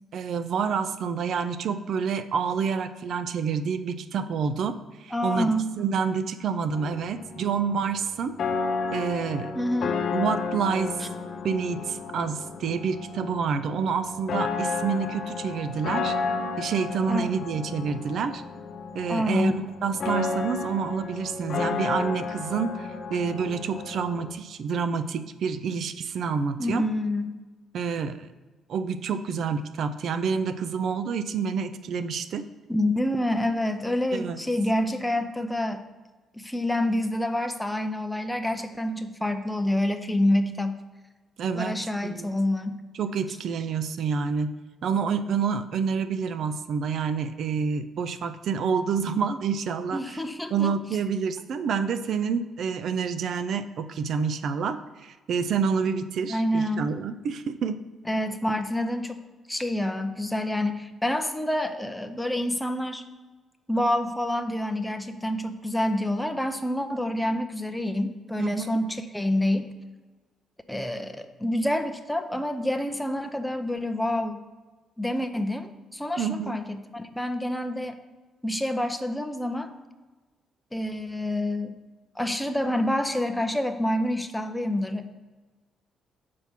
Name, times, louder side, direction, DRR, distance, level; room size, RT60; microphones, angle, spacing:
voice 1, 0.1-5.5 5.8-8.4 8.9-9.6 10.1-11.0 11.4-16.1 16.6-18.4 18.9-26.8 27.7-28.3 28.7-32.5 34.1-34.4 41.4-42.3 43.0-44.6 44.8-50.0 50.5-57.8 68.4-68.8 76.2-76.6, right 6 dB, 65° right, 11 dB, 0.4 m, -28 dB
voice 2, 5.1-5.7 9.5-10.0 17.1-17.3 19.1-19.6 26.6-27.3 32.7-35.8 36.3-40.8 41.5-42.8 49.9-50.7 56.3-56.9 58.1-59.2 59.5-63.0 63.7-69.7 70.7-74.4 75.0-77.9 78.4-79.7 80.7-81.7 82.2-85.1, left 1 dB, 5° left, 7 dB, 0.6 m, -27 dB
sound 1, 6.7-24.3, left 4 dB, 60° left, 0.6 m, -32 dB
5.8 x 4.6 x 5.7 m, 1.3 s
cardioid pair, 90°, 0 cm